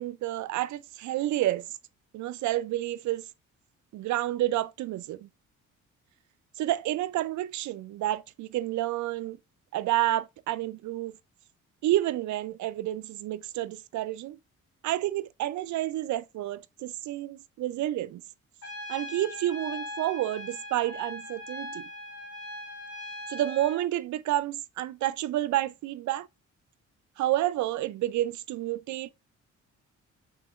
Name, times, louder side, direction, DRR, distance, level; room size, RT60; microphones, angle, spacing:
voice 1, 0.0-1.7 2.1-3.2 3.9-5.3 6.6-9.4 9.7-11.1 11.8-14.4 14.8-18.2 18.9-21.9 23.3-26.3 27.2-29.1, right 14 dB, 70° right, 0.5 m, -29 dB
Trumpet, 18.6-23.8, left 1 dB, 55° left, 2.1 m, -40 dB
5.7 x 2.9 x 2.3 m
cardioid pair, 90°, 30 cm